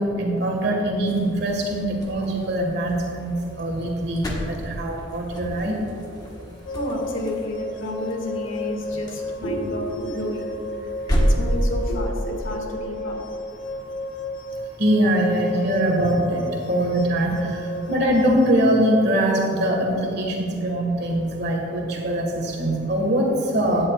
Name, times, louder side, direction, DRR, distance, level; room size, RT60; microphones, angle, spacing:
voice 1, 0.0-5.7 14.8-17.6 17.9-23.9, right 1 dB, 55° right, 0 dB, 1.6 m, -22 dB
sound 1, 1.0-12.1, equal, 20° left, 1.3 m, -30 dB
voice 2, 6.7-10.6 11.2-13.2, left 1 dB, 80° left, 0 dB, 1.9 m, -30 dB
sound 2, 6.7-18.7, left 2 dB, 65° left, 0.5 m, -33 dB
16.5 x 10.0 x 2.4 m, 2.9 s
head